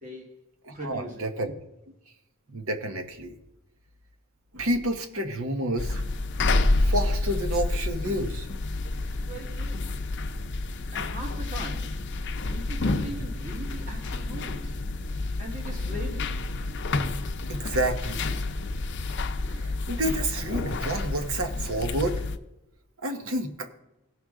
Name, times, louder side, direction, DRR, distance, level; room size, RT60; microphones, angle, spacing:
voice 1, 0.0-0.4 0.7-1.3 9.2-10.0 10.9-12.2 12.5-14.8 15.4-16.5, right 1 dB, 35° right, 1.4 m, -40 dB
voice 2, 0.7-1.5 2.5-3.3 4.5-6.0 6.8-8.5 17.5-18.2 19.5-22.2 23.0-23.7, right 1 dB, 65° right, 1.1 m, -29 dB
sound 1, 5.8-22.4, left 2 dB, 55° left, 0.6 m, -29 dB
17.0 x 6.4 x 3.6 m
head